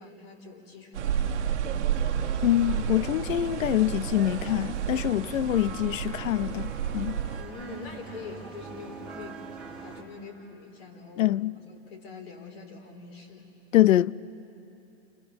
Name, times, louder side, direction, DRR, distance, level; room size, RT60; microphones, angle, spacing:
voice 1, 0.0-1.9 7.3-13.5, left 3 dB, 50° left, 4.6 m, -44 dB
sound 1, 0.9-7.4, right 9 dB, 60° right, 1.4 m, -31 dB
sound 2, 1.9-10.0, right 4 dB, ahead, 1.7 m, -44 dB
voice 2, 2.4-7.2 11.2-11.5 13.7-14.1, left 13 dB, 80° left, 0.7 m, -24 dB
30.0 x 28.0 x 6.9 m
hypercardioid pair, 175°, 39 cm